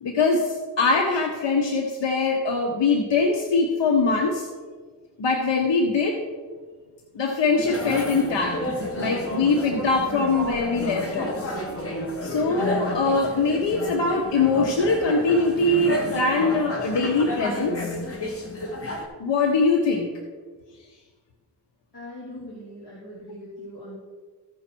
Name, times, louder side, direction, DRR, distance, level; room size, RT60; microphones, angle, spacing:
voice 1, 0.0-4.5 5.2-6.2 7.1-8.6 9.0-11.5 12.2-17.9 19.2-20.1, left 3 dB, 75° left, 1 dB, 1.1 m, -22 dB
sound 1, 7.6-19.1, left 1 dB, 30° left, 1.8 m, -31 dB
voice 2, 21.9-24.0, left 1 dB, 60° left, -6 dB, 2.8 m, -40 dB
15.0 x 5.2 x 4.5 m, 1.5 s
cardioid pair, 75°, 43 cm